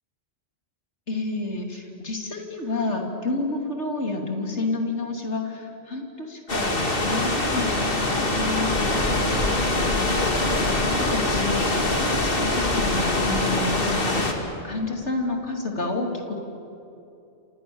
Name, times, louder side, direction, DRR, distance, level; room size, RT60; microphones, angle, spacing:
voice 1, 1.1-10.3 11.0-16.3, left 2 dB, 75° left, 2 dB, 3.5 m, -30 dB
sound 1, 6.5-14.3, left 2 dB, 50° left, 2.7 m, -23 dB
28.5 x 27.5 x 7.2 m, 2.7 s
omnidirectional pair, 1.2 m